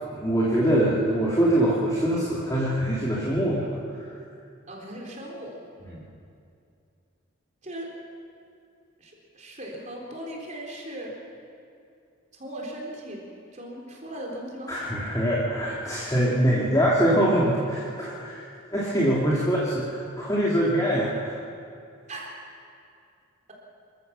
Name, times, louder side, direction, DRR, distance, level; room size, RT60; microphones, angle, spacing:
voice 1, 0.1-3.7 5.9-6.0 14.7-18.4 18.7-21.4, right 1 dB, 15° left, -6 dB, 2.8 m, -23 dB
voice 2, 4.7-5.6 7.6-7.9 9.0-11.1 12.3-13.2 13.5-14.7 22.1-22.3, right 1 dB, 35° right, -2 dB, 3.9 m, -38 dB
26.5 x 15.0 x 6.9 m, 2.5 s
head